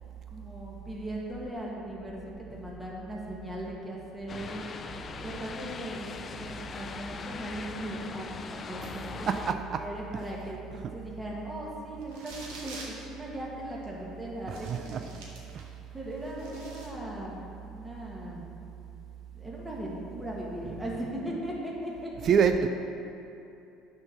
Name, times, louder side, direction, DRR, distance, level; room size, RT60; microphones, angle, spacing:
voice 1, 0.3-2.2 2.5-4.6 5.2-9.3 9.8-15.4 15.9-18.4 19.3-22.3, right 1 dB, 10° right, -4 dB, 1.7 m, -38 dB
sound 1, 4.3-9.5, left 5 dB, 35° left, 0.4 m, -40 dB
voice 2, 9.3-9.8 14.7-15.0 22.3-22.7, right 7 dB, 45° right, 7 dB, 0.3 m, -25 dB
sound 2, 12.0-13.0 13.8-13.9 14.5-15.7 16.1-16.9, right 3 dB, 85° right, 1.5 m, -46 dB
8.6 x 4.6 x 5.8 m, 2.8 s
cardioid pair, 110°, 0 cm